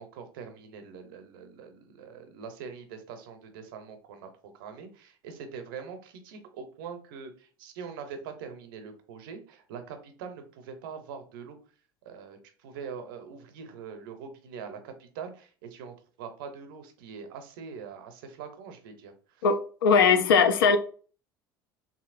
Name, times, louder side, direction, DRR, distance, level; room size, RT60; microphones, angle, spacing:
voice 1, 0.0-4.3 4.6-11.6 12.1-19.4 19.9-20.3, right 6 dB, 70° right, 0.6 m, -43 dB
voice 2, 19.4-20.8, left 5 dB, 85° left, 0.4 m, -20 dB
2.9 x 2.7 x 2.4 m
hypercardioid pair, 75°, 12 cm